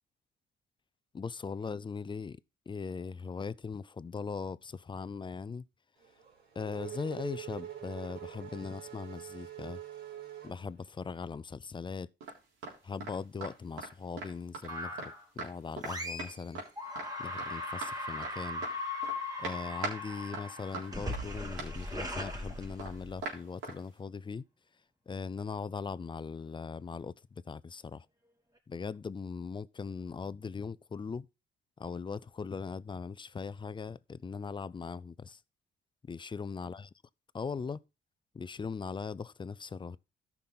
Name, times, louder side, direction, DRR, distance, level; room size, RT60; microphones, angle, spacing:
voice 1, 1.1-2.4 2.7-5.7 6.6-9.8 10.4-12.1 12.8-16.6 17.2-18.6 19.4-24.4 25.1-28.1 28.7-31.3 31.8-35.4 36.1-36.9 37.3-37.8 38.3-40.0, left 5 dB, 25° left, 0.5 m, -40 dB
Race car auto racing / Accelerating revving vroom, 6.0-11.2, right 11 dB, 70° right, 4.6 m, -45 dB
sound 1, 12.2-12.8 13.0-13.2 13.4-13.9 14.2-15.1 15.4-15.5 15.8-15.9 16.2-16.7 17.0-17.1 17.4-17.9 18.2-18.3 18.6-19.2 19.4-20.0 20.3-23.8, right 3 dB, 90° right, 3.6 m, -41 dB
sound 2, 14.7-15.2 15.8-16.5 16.8-23.2, left 2 dB, 20° right, 2.9 m, -39 dB
13.5 x 6.0 x 3.9 m
cardioid pair, 90°, 20 cm